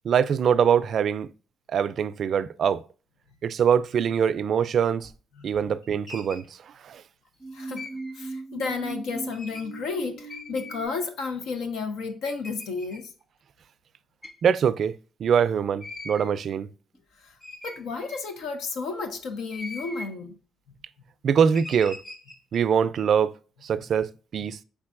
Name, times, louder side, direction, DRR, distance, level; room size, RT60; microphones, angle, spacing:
voice 1, 0.0-1.3 1.7-2.8 3.4-5.1 5.4-6.4 6.8-7.0 14.4-14.9 15.2-16.7 21.2-22.0 22.5-23.3 23.6-24.6, right 7 dB, 60° right, 0.3 m, -23 dB
sound 1, 5.0-5.1 5.5-6.5 7.8-8.1 9.3-9.7 10.3-11.0 11.6-11.7 12.2-13.0 14.2-14.4 15.8-16.3 16.9-17.0 17.4-18.4 19.3-20.1 21.5-22.6, left 2 dB, 20° left, 1.4 m, -41 dB
sound 2, 7.4-10.9, right 3 dB, 5° left, 0.8 m, -38 dB
voice 2, 8.1-13.1 17.2-17.3 17.6-20.4, left 4 dB, 85° left, 0.7 m, -32 dB
5.2 x 3.6 x 2.4 m
cardioid pair, 90°, 0 cm